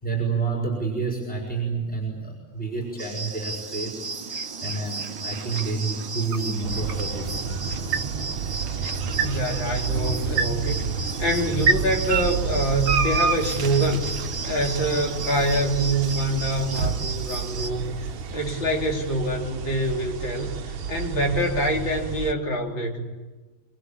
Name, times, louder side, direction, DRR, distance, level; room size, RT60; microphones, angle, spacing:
voice 1, 0.0-4.1 4.6-7.7, right 4 dB, 5° left, -1 dB, 5.9 m, -29 dB
sound 1, 2.8-19.0, right 5 dB, 70° right, 1.7 m, -32 dB
sound 2, 3.0-17.7, right 4 dB, 25° right, 1.7 m, -35 dB
sound 3, 6.6-22.3, right 6 dB, 90° right, 1.9 m, -31 dB
voice 2, 9.2-10.8 11.2-14.1 14.4-17.8 18.3-23.0, right 1 dB, 70° left, -1 dB, 4.5 m, -25 dB
26.0 x 25.0 x 8.7 m, 1.2 s
omnidirectional pair, 2.2 m